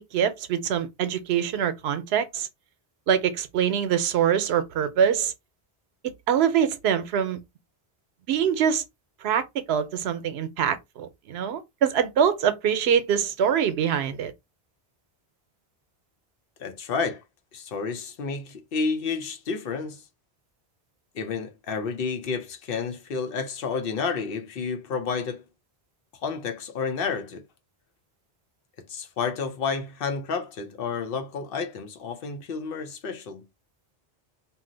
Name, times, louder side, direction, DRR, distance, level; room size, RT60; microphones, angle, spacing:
voice 1, 0.0-2.5 3.1-5.3 6.3-7.4 8.3-8.8 9.2-14.3, right 8 dB, 90° right, 0.8 m, -24 dB
voice 2, 16.6-17.2 17.5-20.0 21.1-25.4 26.2-27.4 28.9-33.5, left 5 dB, 65° left, 0.8 m, -30 dB
2.7 x 2.0 x 3.7 m
omnidirectional pair, 1.0 m